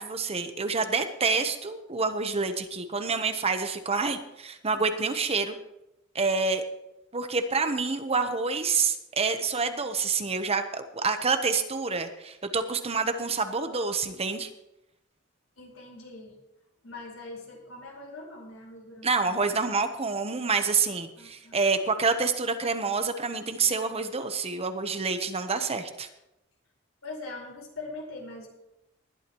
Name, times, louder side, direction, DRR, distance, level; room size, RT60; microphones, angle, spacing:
voice 1, 0.0-5.6 6.1-6.6 7.1-14.5 19.0-26.1, right 4 dB, 30° right, 8 dB, 0.9 m, -27 dB
voice 2, 15.6-16.4 16.8-19.4 21.2-21.6 27.0-28.5, left 2 dB, 85° left, -1 dB, 4.7 m, -42 dB
19.5 x 12.0 x 3.1 m, 0.90 s
head